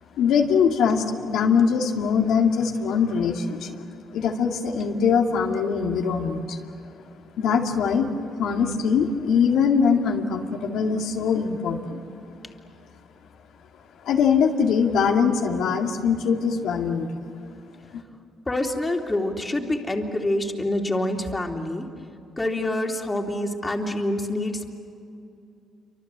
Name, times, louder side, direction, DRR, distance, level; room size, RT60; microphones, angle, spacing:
voice 1, 0.2-3.8 4.1-6.6 7.4-8.1 8.4-12.0 14.0-17.1, left 6 dB, 85° left, 1 dB, 2.3 m, -22 dB
voice 2, 18.4-21.9 22.4-24.7, left 1 dB, 20° left, 2 dB, 3.1 m, -26 dB
28.5 x 25.0 x 8.1 m, 2.6 s
cardioid pair, 90°, 0 cm